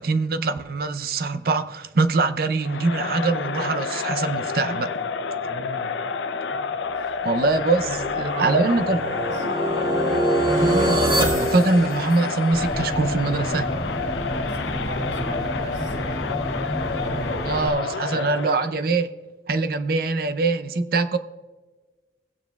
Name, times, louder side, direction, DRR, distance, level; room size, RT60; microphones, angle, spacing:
voice 1, 0.0-4.9 7.2-9.0 10.6-13.7 17.5-19.1 19.5-21.2, right 3 dB, 55° right, 0.6 m, -23 dB
Crowd, 2.6-18.8, left 4 dB, 90° left, 0.6 m, -29 dB
voice 2, 5.4-5.9 6.5-7.2 7.5-9.5 14.3-16.5 17.0-18.3, right 1 dB, 85° right, 2.2 m, -37 dB
sound 1, 7.4-12.6, right 1 dB, 30° right, 1.8 m, -25 dB
sound 2, 12.5-17.7, equal, 20° left, 1.3 m, -30 dB
17.0 x 9.0 x 2.3 m
head